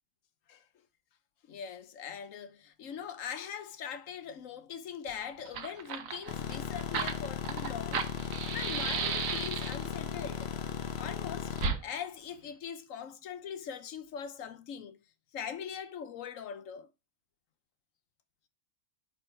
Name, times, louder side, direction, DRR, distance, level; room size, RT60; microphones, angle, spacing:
voice 1, 1.5-10.6 11.0-15.0 15.3-16.9, left 8 dB, 75° left, 1.2 m, -42 dB
Fire, 5.1-5.2 5.4-9.9 11.6-11.8, right 6 dB, 85° right, 1.3 m, -34 dB
sound 1, 6.3-11.7, left 8 dB, 55° left, 0.9 m, -37 dB
4.5 x 4.1 x 5.6 m
omnidirectional pair, 1.4 m